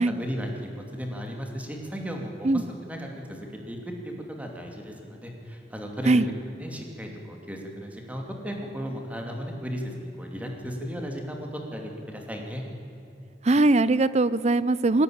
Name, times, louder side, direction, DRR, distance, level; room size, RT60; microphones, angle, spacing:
voice 1, 0.0-2.5 2.9-6.2 6.6-12.6, equal, 10° right, 1 dB, 2.7 m, -35 dB
voice 2, 13.4-15.0, right 2 dB, 35° right, 17 dB, 0.6 m, -21 dB
21.0 x 16.5 x 8.8 m, 2.9 s
head